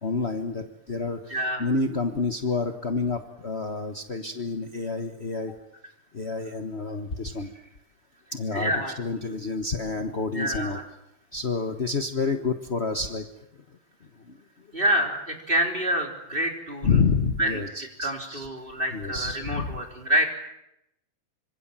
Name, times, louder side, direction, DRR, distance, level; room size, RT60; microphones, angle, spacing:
voice 1, 0.0-5.5 6.1-7.5 8.3-10.8 11.3-13.3 14.2-14.4 16.8-18.5 18.9-19.8, left 4 dB, 50° left, 5 dB, 0.8 m, -29 dB
voice 2, 1.3-1.7 8.5-8.9 10.3-10.8 14.7-16.9 17.4-17.6 18.0-20.3, equal, 15° right, 2 dB, 4.3 m, -27 dB
26.5 x 26.0 x 7.6 m, 0.83 s
omnidirectional pair, 3.4 m